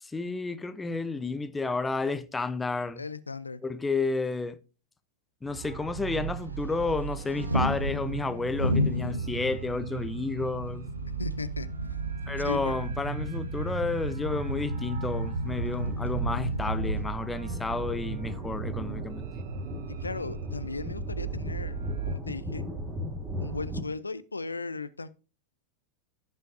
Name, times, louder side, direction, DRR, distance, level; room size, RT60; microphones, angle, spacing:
voice 1, 0.0-3.0 3.6-4.6 5.4-10.9 12.3-19.3, left 3 dB, 10° left, 0.7 m, -31 dB
voice 2, 3.0-3.6 11.2-11.7 12.4-12.8 19.9-21.8 22.1-22.6 23.4-25.1, left 4 dB, 80° left, 0.5 m, -36 dB
sound 1, 5.5-22.1, right 12 dB, 50° right, 1.1 m, -38 dB
sound 2, 6.2-17.1, equal, 85° right, 0.9 m, -33 dB
sound 3, 15.2-23.8, left 1 dB, 15° right, 1.7 m, -37 dB
16.0 x 5.7 x 2.7 m
figure-of-eight pair, 90°, 0 cm